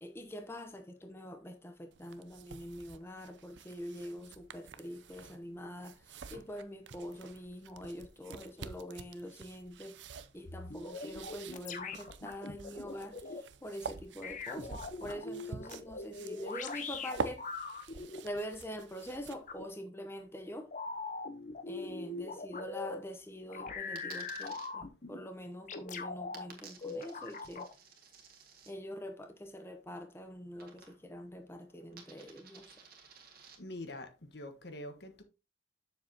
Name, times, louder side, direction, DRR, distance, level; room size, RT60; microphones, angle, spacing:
voice 1, 0.0-6.0 6.3-10.0 10.3-17.5 18.2-20.7 21.7-27.7 28.7-32.7, equal, 15° left, 0.9 m, -44 dB
sound 1, 1.9-19.6, right 5 dB, 80° right, 0.6 m, -47 dB
sound 2, 10.4-13.4 14.2-18.2 19.5-19.7 20.7-23.0 23.5-25.2 25.7-26.4 26.8-27.7, left 3 dB, 45° left, 0.9 m, -41 dB
Coin (dropping), 24.0-24.7 26.3-28.7 30.6-31.2 31.5-33.6, right 6 dB, 55° right, 1.8 m, -54 dB
voice 2, 33.6-35.2, left 1 dB, 65° left, 1.3 m, -45 dB
7.4 x 7.0 x 2.8 m
head